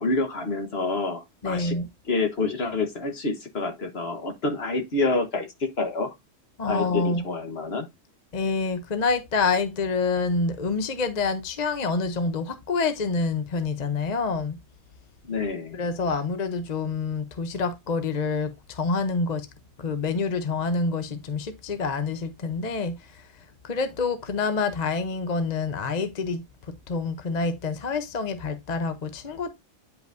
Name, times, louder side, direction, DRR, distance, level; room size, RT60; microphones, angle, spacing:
voice 1, 0.0-1.7 2.1-6.1 6.6-7.8 15.2-15.8, left 3 dB, 55° left, 1.5 m, -27 dB
voice 2, 1.4-1.9 6.6-7.3 8.3-14.6 15.7-19.5 19.8-29.5, left 4 dB, 40° left, 0.8 m, -27 dB
9.3 x 5.3 x 2.6 m
omnidirectional pair, 1.3 m